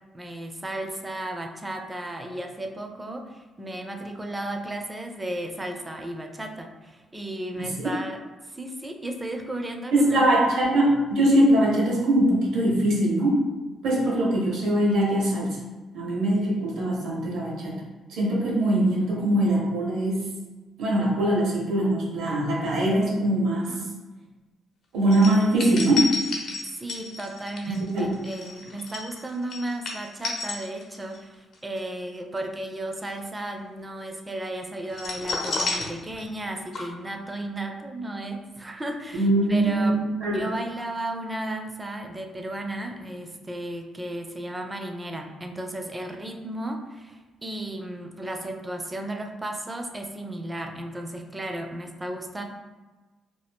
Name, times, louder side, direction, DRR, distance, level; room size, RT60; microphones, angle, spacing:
voice 1, 0.1-8.2 8.5-10.3 23.7-23.9 26.8-40.0 40.2-52.4, right 1 dB, 20° right, 4 dB, 0.4 m, -34 dB
voice 2, 7.6-7.9 9.9-13.4 13.8-15.6 15.9-17.8 18.1-20.3 20.8-23.7 24.9-26.1 27.9-28.1 39.1-40.4, right 1 dB, 80° right, -4 dB, 1.0 m, -22 dB
sound 1, 25.1-31.2 31.5-31.8 34.9-36.5 36.7-36.8, left 3 dB, 65° left, 0.7 m, -31 dB
2.6 x 2.3 x 3.5 m, 1.2 s
cardioid pair, 90°, 0 cm